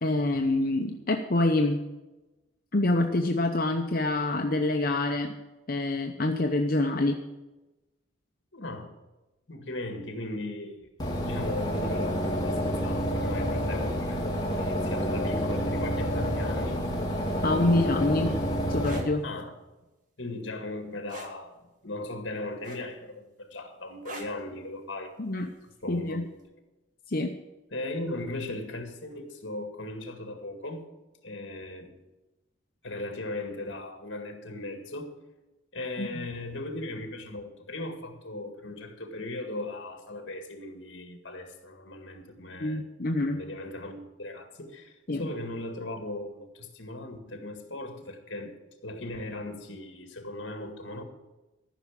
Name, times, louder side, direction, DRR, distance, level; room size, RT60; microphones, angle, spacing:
voice 1, 0.0-1.8 2.7-5.3 5.7-7.2 17.4-18.3 18.7-19.2 25.2-25.5 25.9-26.2 27.1-27.3 36.0-36.2 42.6-43.4 45.1-45.2, left 2 dB, 45° left, 3 dB, 0.8 m, -26 dB
voice 2, 8.5-8.9 9.5-16.8 19.2-19.5 20.2-21.5 21.8-25.1 25.8-26.2 27.7-30.8 31.2-31.9 32.8-35.1 35.7-42.9 43.2-48.6 48.8-51.0, left 2 dB, 65° left, 5 dB, 2.0 m, -38 dB
sound 1, 11.0-19.0, equal, 20° left, 2.1 m, -29 dB
sound 2, 18.8-19.1 21.1-21.4 22.6-23.1 24.0-24.4 25.8-26.0, right 2 dB, 40° right, 1.7 m, -41 dB
14.5 x 5.9 x 8.7 m, 1.1 s
head